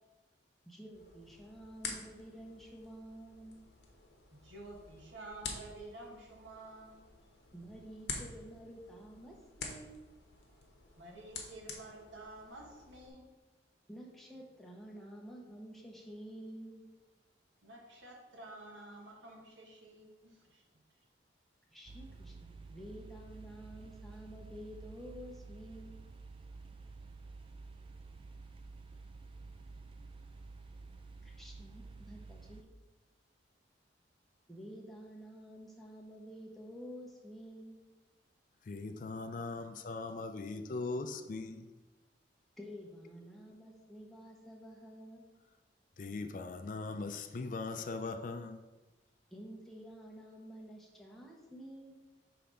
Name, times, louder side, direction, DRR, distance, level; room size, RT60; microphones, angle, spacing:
voice 1, 0.7-3.6 7.5-10.0 13.9-16.8 21.7-26.0 31.2-32.6 34.5-37.8 42.6-45.3 49.3-52.0, equal, ahead, -3 dB, 0.9 m, -50 dB
sound 1, 0.9-13.1, left 4 dB, 60° left, 0.9 m, -48 dB
voice 2, 4.4-7.0 11.0-13.3 17.6-20.6, right 2 dB, 85° right, 0 dB, 1.3 m, -50 dB
sound 2, 21.9-32.6, right 3 dB, 30° right, 0.3 m, -51 dB
voice 3, 38.6-41.7 46.0-48.6, left 3 dB, 45° left, 8 dB, 0.4 m, -40 dB
5.8 x 3.4 x 5.1 m, 1.2 s
head